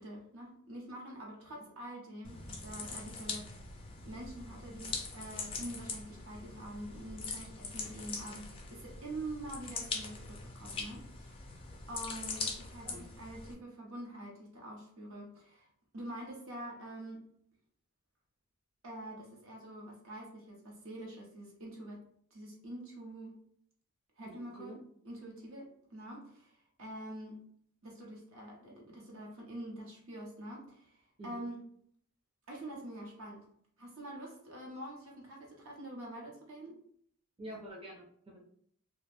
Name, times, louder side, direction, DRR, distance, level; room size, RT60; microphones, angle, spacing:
voice 1, 0.0-3.5 4.0-11.5 11.9-17.2 18.8-22.0 22.3-23.3 24.2-24.8 25.0-27.4 27.8-31.6 32.5-33.5 33.8-36.8, right 1 dB, 60° right, -1 dB, 0.9 m, -46 dB
sound 1, 2.2-13.5, left 4 dB, 25° left, 0.4 m, -42 dB
voice 2, 24.4-24.8 31.2-31.4 37.4-38.4, right 1 dB, 25° right, -4 dB, 0.6 m, -47 dB
2.5 x 2.3 x 3.3 m, 0.64 s
head